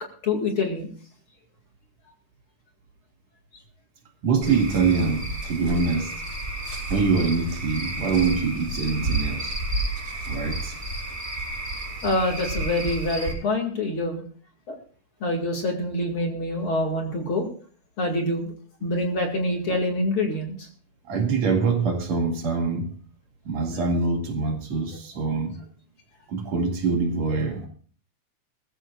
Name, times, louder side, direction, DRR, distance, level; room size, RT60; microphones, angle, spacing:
voice 1, 0.2-0.9 12.0-14.2 14.7-14.8 15.2-17.5 18.0-18.5 18.8-20.7, left 1 dB, 45° left, 2.7 m, -26 dB
voice 2, 4.2-6.2 6.9-9.5 10.3-10.8 21.1-22.9 23.4-25.6 26.3-27.7, right 4 dB, 60° right, 3.2 m, -24 dB
Cricket / Frog, 4.4-13.3, right 2 dB, 25° right, 5.1 m, -31 dB
20.5 x 14.5 x 2.4 m
omnidirectional pair, 3.7 m